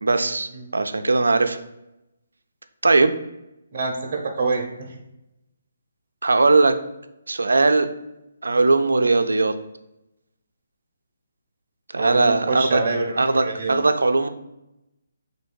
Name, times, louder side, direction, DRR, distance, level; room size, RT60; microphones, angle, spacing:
voice 1, 0.0-1.6 2.8-3.1 6.2-6.8 7.3-7.9 8.4-9.5 11.9-12.8 13.2-14.3, right 3 dB, 90° right, 8 dB, 0.4 m, -19 dB
voice 2, 3.7-5.0 12.0-13.8, right 3 dB, 50° right, 0 dB, 0.8 m, -26 dB
3.4 x 2.6 x 4.6 m, 0.89 s
hypercardioid pair, 155°, 0 cm